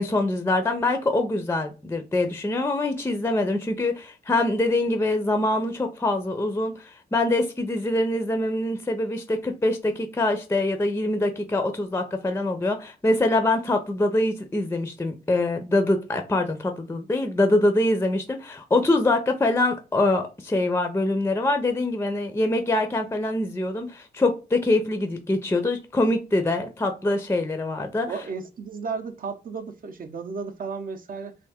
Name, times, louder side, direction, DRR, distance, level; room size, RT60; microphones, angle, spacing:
voice 1, 0.0-28.1, left 2 dB, 15° left, 0.5 m, -24 dB
voice 2, 28.1-31.4, right 5 dB, 55° right, 0.6 m, -34 dB
3.3 x 2.5 x 3.5 m
wide cardioid pair, 110°, 17 cm